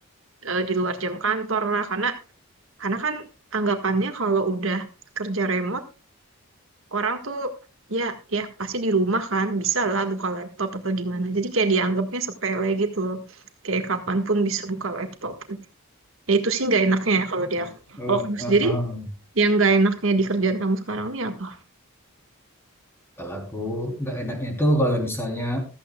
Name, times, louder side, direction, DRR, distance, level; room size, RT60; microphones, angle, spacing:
voice 1, 0.4-2.1 2.8-3.2 3.5-4.8 5.2-5.8 6.9-7.5 7.9-13.2 13.6-15.6 16.3-18.8 19.3-21.6, right 3 dB, 65° right, 6 dB, 1.7 m, -24 dB
voice 2, 18.0-19.0 23.2-25.6, equal, 10° left, 2 dB, 3.5 m, -26 dB
15.5 x 13.5 x 2.3 m, 0.31 s
head